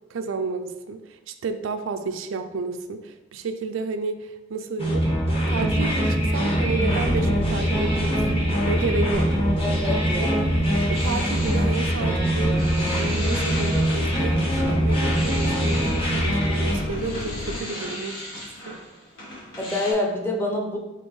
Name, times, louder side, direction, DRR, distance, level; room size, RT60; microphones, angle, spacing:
voice 1, 0.1-5.0 5.5-9.4 10.2-10.3 10.9-12.7 12.9-18.2 18.6-18.8, right 4 dB, 75° right, 7 dB, 0.4 m, -31 dB
sound 1, 4.8-16.8, equal, 30° left, 1.0 m, -23 dB
sound 2, 6.8-17.6, left 2 dB, 65° left, 0.4 m, -35 dB
voice 2, 9.6-10.5 19.6-20.8, left 1 dB, 10° left, 0 dB, 0.7 m, -26 dB
sound 3, 10.8-19.9, left 1 dB, 85° left, 1.6 m, -37 dB
4.2 x 3.8 x 3.2 m, 1.0 s
head